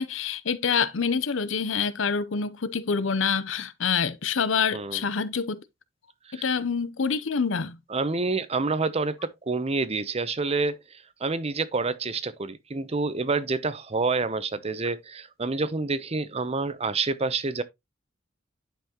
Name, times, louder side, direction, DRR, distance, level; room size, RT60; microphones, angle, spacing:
voice 1, 0.0-5.6 6.3-7.8, left 6 dB, 85° left, 0.7 m, -26 dB
voice 2, 4.7-5.0 6.3-6.6 7.9-10.8 11.2-17.6, right 3 dB, 35° right, 0.7 m, -28 dB
10.0 x 5.8 x 2.9 m
head